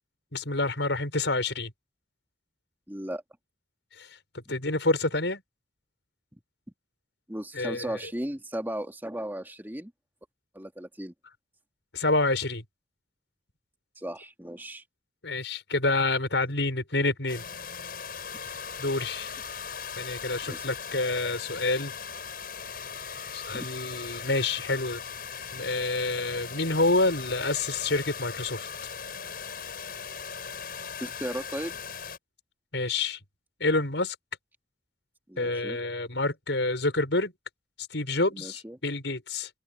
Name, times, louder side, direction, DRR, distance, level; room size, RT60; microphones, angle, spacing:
voice 1, 0.3-1.7 4.0-4.1 4.3-5.4 7.5-7.9 11.9-12.6 15.2-17.4 18.8-19.3 20.0-21.9 23.3-25.0 25.5-28.7 32.7-33.2 33.6-34.2 35.4-37.3 37.9-39.5, left 2 dB, 85° left, 5.6 m, -28 dB
voice 2, 2.9-3.2 4.5-4.6 6.3-6.4 7.3-9.9 10.5-11.1 14.0-14.8 20.5-20.6 23.5-23.7 31.0-31.8 35.3-35.8 38.3-38.8, right 1 dB, 10° right, 2.1 m, -36 dB
sound 1, 17.3-32.2, left 6 dB, 55° left, 7.4 m, -39 dB
open air
head